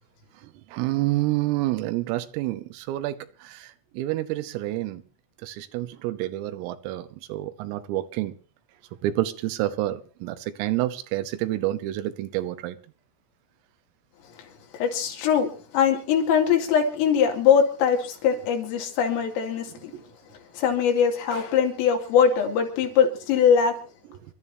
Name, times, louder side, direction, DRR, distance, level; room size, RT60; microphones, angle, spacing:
voice 1, 0.4-5.0 5.4-8.3 9.0-12.8 19.9-20.0, right 15 dB, 90° right, 3.6 m, -28 dB
voice 2, 14.7-19.9 20.5-23.8, left 7 dB, 80° left, 5.1 m, -22 dB
28.5 x 12.5 x 2.7 m
omnidirectional pair, 5.8 m